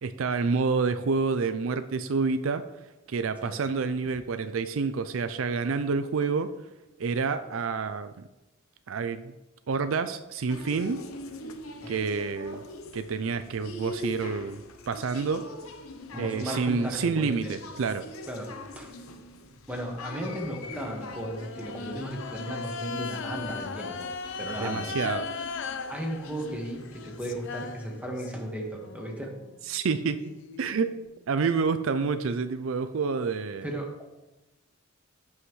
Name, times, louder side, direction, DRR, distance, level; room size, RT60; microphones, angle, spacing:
voice 1, 0.0-2.6 3.1-6.5 7.0-8.3 8.9-9.4 9.7-11.0 11.9-12.6 12.9-15.5 16.2-18.0 24.6-25.3 29.7-30.2 30.6-30.9 31.3-33.7, right 5 dB, 70° right, 11 dB, 0.4 m, -28 dB
sound 1, 10.5-27.4, left 1 dB, 90° left, 0.8 m, -42 dB
voice 2, 16.1-17.5 18.3-19.0 19.7-24.1 24.4-24.9 25.9-29.3 33.6-34.1, right 1 dB, 5° right, 0 dB, 1.6 m, -35 dB
sound 2, 20.6-28.5 28.8-31.5, left 5 dB, 60° left, 0.6 m, -39 dB
16.0 x 5.6 x 3.2 m, 1.0 s
head